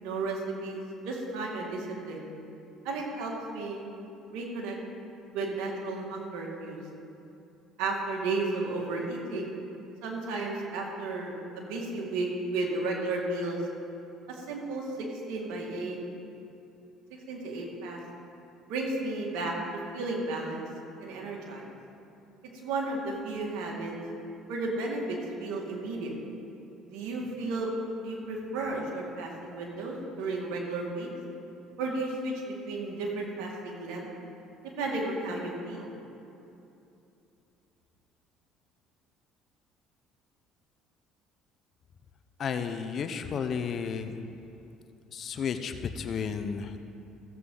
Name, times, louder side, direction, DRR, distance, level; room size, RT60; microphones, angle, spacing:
voice 1, 0.0-2.3 2.8-3.8 4.3-4.8 5.3-6.8 7.8-9.5 10.0-13.6 14.3-14.9 15.3-16.0 17.1-18.0 18.7-19.5 19.9-20.6 21.0-21.6 22.6-23.9 24.5-26.1 26.9-27.7 28.0-31.1 31.8-34.1 34.7-35.9, right 2 dB, 80° right, -1 dB, 2.1 m, -33 dB
voice 2, 42.4-44.2 45.1-46.8, left 6 dB, 50° left, 9 dB, 0.8 m, -32 dB
15.0 x 7.9 x 3.9 m, 2.8 s
supercardioid pair, 85°, 0 cm